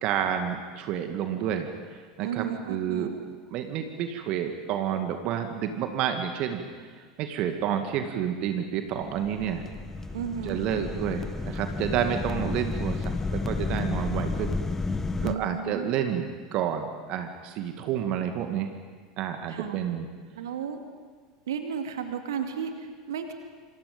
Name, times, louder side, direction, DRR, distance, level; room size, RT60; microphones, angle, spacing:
voice 1, 0.0-3.1 3.5-6.6 7.0-9.7 10.4-14.6 15.2-18.7 19.2-20.1, right 9 dB, 50° right, 6 dB, 2.1 m, -30 dB
voice 2, 2.2-3.1 10.1-10.6 15.2-15.9 19.5-19.8 20.4-20.8 21.5-23.3, right 7 dB, 70° right, 6 dB, 2.3 m, -33 dB
sound 1, 9.0-15.4, left 3 dB, 15° left, 1.2 m, -31 dB
27.5 x 26.0 x 5.4 m, 1.6 s
figure-of-eight pair, 80°, 2 cm